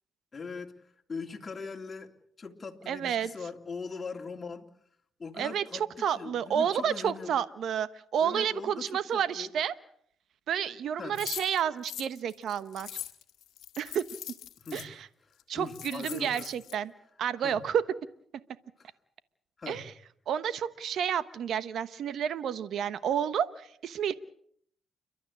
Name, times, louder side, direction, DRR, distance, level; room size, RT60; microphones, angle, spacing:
voice 1, 0.3-0.7 1.1-2.1 2.4-4.7 5.2-7.3 8.2-9.5 11.0-11.2 14.6-15.0 15.5-16.5 17.4-17.6 18.8-18.9 19.6-19.9, left 4 dB, 30° left, 3 dB, 3.0 m, -40 dB
voice 2, 2.9-3.3 5.4-9.7 10.5-12.9 13.8-14.0 14.7-15.1 15.5-16.9 17.2-17.8 19.7-19.8 20.3-24.1, right 8 dB, 70° right, 14 dB, 1.1 m, -30 dB
sound 1, 11.2-14.9 15.4-15.5 15.7-16.7, left 12 dB, 80° left, 1.6 m, -41 dB
30.0 x 12.5 x 8.6 m, 0.67 s
cardioid pair, 90°, 0 cm